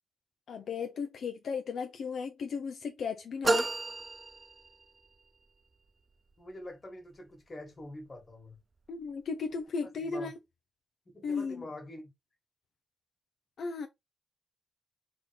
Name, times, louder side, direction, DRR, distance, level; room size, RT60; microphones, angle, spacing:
voice 1, 0.5-3.7 8.9-10.4 11.2-11.7 13.6-13.9, left 5 dB, 65° left, 0.6 m, -35 dB
sound 1, 3.4-5.1, right 2 dB, 25° right, 0.5 m, -31 dB
voice 2, 6.4-8.6 10.1-10.3 11.1-12.1, left 1 dB, 30° left, 1.7 m, -45 dB
4.2 x 3.7 x 3.3 m
wide cardioid pair, 135°, 0 cm